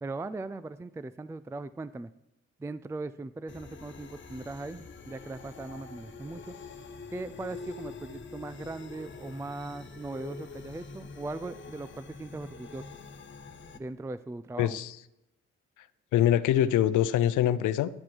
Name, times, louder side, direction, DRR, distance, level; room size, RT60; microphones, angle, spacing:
voice 1, 0.0-2.1 2.6-6.5 7.1-12.8 13.7-14.8, right 3 dB, 10° right, 14 dB, 0.4 m, -39 dB
sound 1, 3.5-13.8, left 4 dB, 40° left, 1.3 m, -45 dB
voice 2, 14.6-14.9 16.1-17.9, left 11 dB, 80° left, 15 dB, 0.7 m, -24 dB
10.5 x 7.6 x 6.3 m, 0.89 s
cardioid pair, 90°, 30 cm